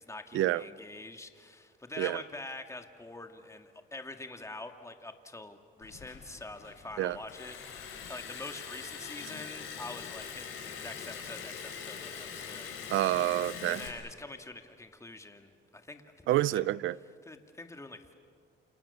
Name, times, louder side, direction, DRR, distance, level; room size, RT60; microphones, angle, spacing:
voice 1, 0.0-13.0 13.7-16.0 16.4-16.6 17.3-18.1, left 2 dB, 15° left, 6 dB, 2.2 m, -45 dB
Liquid, 5.8-13.9, left 7 dB, 85° left, 5.2 m, -43 dB
voice 2, 12.9-13.8 16.3-17.0, right 14 dB, 80° right, 20 dB, 0.6 m, -28 dB
29.5 x 28.0 x 7.1 m, 2.1 s
cardioid pair, 90°, 20 cm